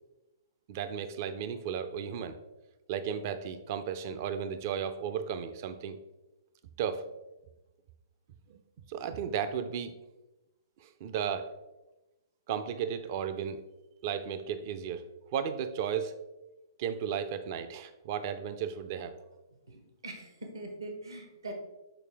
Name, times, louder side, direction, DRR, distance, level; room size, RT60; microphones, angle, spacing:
voice 1, 0.7-2.4 2.9-6.0 6.8-7.0 8.5-8.6 8.9-9.9 10.8-11.5 12.5-13.6 14.0-15.0 15.3-16.1 16.8-19.2, right 8 dB, 40° right, 10 dB, 0.5 m, -34 dB
voice 2, 19.7-21.5, right 2 dB, 70° right, 3 dB, 1.0 m, -42 dB
6.9 x 4.2 x 3.4 m, 1.0 s
figure-of-eight pair, 120°, 2 cm